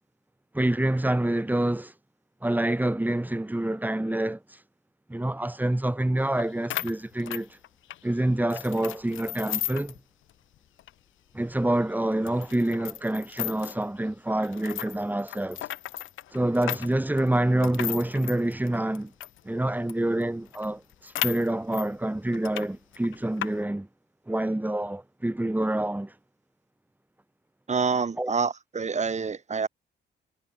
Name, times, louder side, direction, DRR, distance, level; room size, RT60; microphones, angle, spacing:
voice 1, 0.5-1.9 2.4-4.4 5.1-7.6 8.0-9.9 11.3-15.6 16.3-19.1 19.4-23.9 24.3-26.1 28.2-28.3, right 1 dB, 10° right, 7.8 m, -27 dB
sound 1, 6.4-6.5 6.7-8.0 8.5-10.0 10.3-10.4 10.8-10.9 11.5-11.6 12.3-13.8 14.4-19.4 19.9-20.0 20.2-20.3 20.5-21.9 22.3-22.7 22.9-23.5, left 14 dB, 85° left, 4.3 m, -35 dB
voice 2, 27.7-29.7, right 5 dB, 35° right, 7.0 m, -27 dB
cardioid pair, 90°, 20 cm